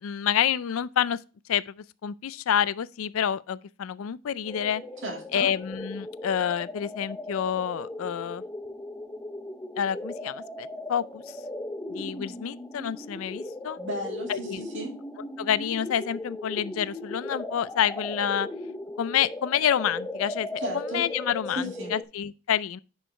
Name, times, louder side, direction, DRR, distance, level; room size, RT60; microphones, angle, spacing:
voice 1, 0.0-1.2 1.5-4.8 5.3-8.4 9.8-11.4 11.9-13.8 14.3-14.6 15.4-18.5 19.0-20.5 20.7-22.8, left 9 dB, 80° left, 0.4 m, -28 dB
sound 1, 4.4-22.0, left 1 dB, 10° left, 0.6 m, -38 dB
voice 2, 5.0-5.5 13.8-15.0 20.6-21.0 21.6-21.9, equal, 60° right, 2.1 m, -34 dB
10.5 x 4.7 x 3.2 m
head